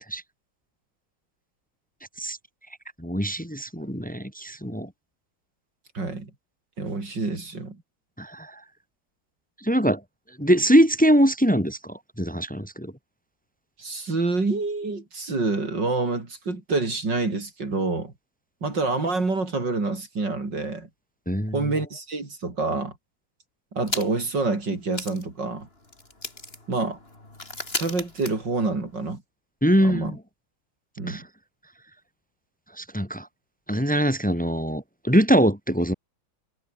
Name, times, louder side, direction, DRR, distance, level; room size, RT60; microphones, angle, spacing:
voice 1, 3.0-4.9 8.2-8.5 9.6-10.0 10.4-12.9 21.3-21.6 29.6-30.2 31.1-31.2 32.8-33.3 33.7-35.9, equal, 5° left, 3.4 m, -22 dB
voice 2, 5.9-6.3 6.8-7.8 13.8-18.1 18.6-20.9 21.5-22.9 23.7-25.7 26.7-27.0 27.8-29.2 29.8-30.1 31.0-31.2, right 3 dB, 60° right, 5.1 m, -27 dB
sound 1, 23.8-24.4 24.6-24.7 24.9-29.1, left 2 dB, 25° left, 4.9 m, -36 dB
omnidirectional pair, 2.2 m